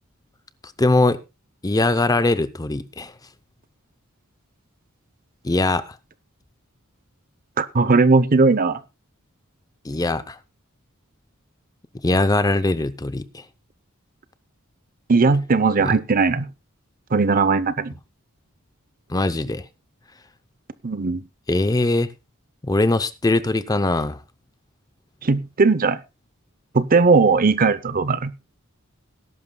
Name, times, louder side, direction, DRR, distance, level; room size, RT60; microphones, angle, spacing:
voice 1, 0.8-1.2 1.6-3.1 5.4-6.0 9.8-10.4 12.0-13.4 15.8-15.9 19.1-19.6 21.5-22.1 22.6-24.2, left 2 dB, 15° left, 0.6 m, -21 dB
voice 2, 7.6-8.8 15.1-16.5 17.1-17.9 20.8-21.2 25.2-26.0 26.7-28.3, right 4 dB, 40° right, 0.7 m, -18 dB
19.0 x 11.0 x 2.3 m
head